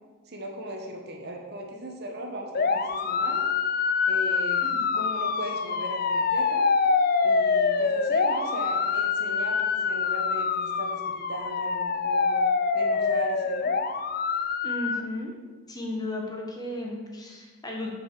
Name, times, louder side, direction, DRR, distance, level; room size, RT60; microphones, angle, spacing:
voice 1, 0.3-3.4 4.1-4.6 4.9-6.7 7.2-12.4 12.7-13.7, right 1 dB, 50° right, 2 dB, 1.3 m, -37 dB
sound 1, 2.5-15.0, left 5 dB, 45° left, 0.4 m, -25 dB
voice 2, 4.6-5.1 14.6-15.3 15.7-17.9, left 1 dB, 20° left, -1 dB, 1.3 m, -35 dB
8.3 x 5.2 x 6.8 m, 1.4 s
head